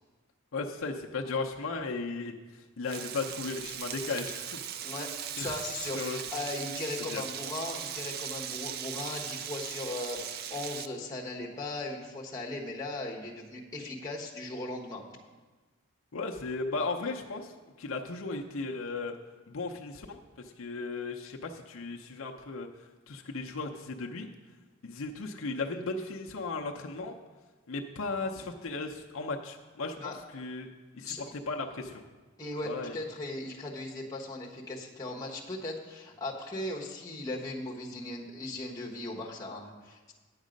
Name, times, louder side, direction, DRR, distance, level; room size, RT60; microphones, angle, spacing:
voice 1, 0.5-4.8 5.4-5.6 5.9-6.2 7.0-7.2 16.1-17.5 17.8-19.1 19.5-22.7 23.1-24.3 24.8-27.1 27.7-30.7 30.9-32.0 32.6-33.0, left 3 dB, 70° left, 2 dB, 0.6 m, -36 dB
Frying (food), 2.8-10.9, right 9 dB, 45° right, 0.3 m, -39 dB
voice 2, 5.4-15.0 30.0-30.2 31.0-31.2 32.4-40.1, left 2 dB, 15° left, -3 dB, 1.2 m, -38 dB
9.6 x 7.3 x 5.2 m, 1.3 s
head